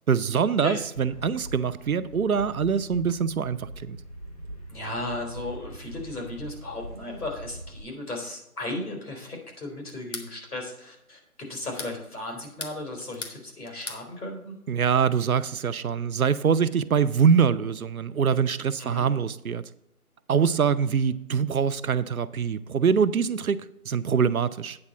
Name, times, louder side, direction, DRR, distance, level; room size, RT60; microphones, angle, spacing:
voice 1, 0.1-4.0 14.7-19.6 20.3-24.8, right 6 dB, 70° right, 0.6 m, -24 dB
sound 1, 0.9-7.8, right 1 dB, 25° left, 0.8 m, -42 dB
voice 2, 4.7-11.2 11.5-14.5 18.8-19.1, left 2 dB, 75° left, 3.6 m, -35 dB
sound 2, 9.9-10.3 11.5-12.0 12.4-13.4 13.6-14.0, left 3 dB, 55° left, 1.3 m, -38 dB
8.7 x 4.2 x 7.1 m
figure-of-eight pair, 160°, 45 cm